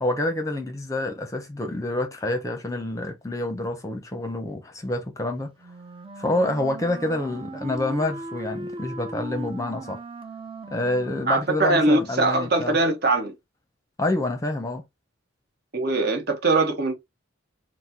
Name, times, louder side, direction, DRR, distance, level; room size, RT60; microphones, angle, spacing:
voice 1, 0.0-5.5 6.2-10.0 10.7-12.8 14.0-14.8, left 2 dB, 15° left, 0.7 m, -27 dB
Wind instrument woodwind instrument, 5.6-11.7, right 2 dB, 30° right, 0.5 m, -38 dB
voice 2, 11.3-13.3 15.7-16.9, right 2 dB, 55° right, 1.0 m, -22 dB
4.1 x 2.1 x 4.4 m
head